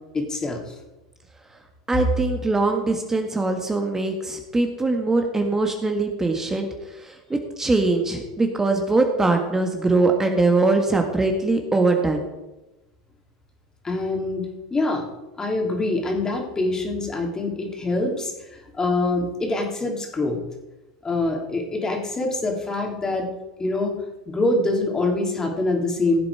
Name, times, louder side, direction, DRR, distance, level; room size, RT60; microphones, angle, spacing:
voice 1, 0.1-0.7 13.8-15.1 15.4-20.4 21.0-23.3 23.6-24.0 24.3-26.3, left 2 dB, 20° left, 2 dB, 3.1 m, -25 dB
voice 2, 1.9-6.7 7.0-12.2, right 3 dB, 15° right, 4 dB, 1.6 m, -22 dB
16.5 x 7.5 x 4.8 m, 1.0 s
hypercardioid pair, 95°, 3 cm